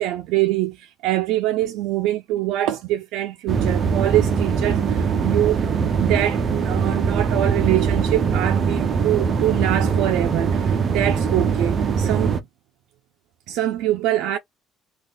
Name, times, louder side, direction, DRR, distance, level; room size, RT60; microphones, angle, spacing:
voice 1, 0.0-12.4 13.5-14.4, right 14 dB, 85° right, 0.4 m, -24 dB
sound 1, 3.5-12.4, right 6 dB, 30° right, 0.5 m, -21 dB
3.7 x 2.3 x 2.5 m
cardioid pair, 170°, 0 cm